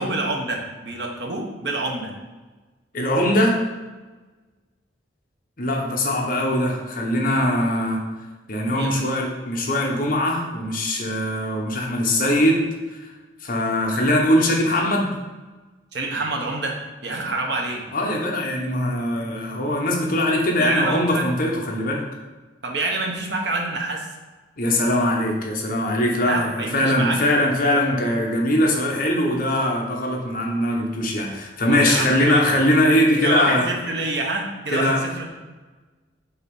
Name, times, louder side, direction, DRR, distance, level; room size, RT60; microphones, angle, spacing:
voice 1, 0.0-2.1 8.6-9.1 15.9-16.8 17.0-17.8 20.6-21.3 22.6-24.0 26.2-27.2 31.7-32.5 33.2-35.3, right 2 dB, 65° right, 1 dB, 1.1 m, -27 dB
voice 2, 2.9-3.6 5.6-8.0 8.5-13.1 13.4-15.1 17.9-22.0 24.6-33.6 34.7-35.0, left 1 dB, 50° left, 0 dB, 1.0 m, -21 dB
6.7 x 2.9 x 5.4 m, 1.2 s
head